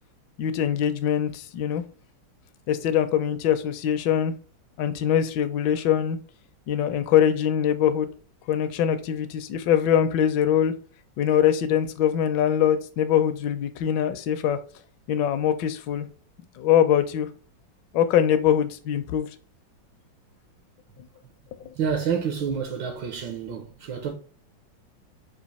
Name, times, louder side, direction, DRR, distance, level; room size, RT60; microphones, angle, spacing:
voice 1, 0.4-1.8 2.7-4.3 4.8-6.2 6.7-8.1 8.5-10.7 11.2-14.6 15.1-16.1 16.6-17.3 17.9-19.3 21.6-21.7, left 9 dB, 75° left, 1.2 m, -23 dB
voice 2, 21.7-24.1, right 7 dB, 75° right, 1.5 m, -28 dB
5.1 x 2.5 x 4.1 m
omnidirectional pair, 2.1 m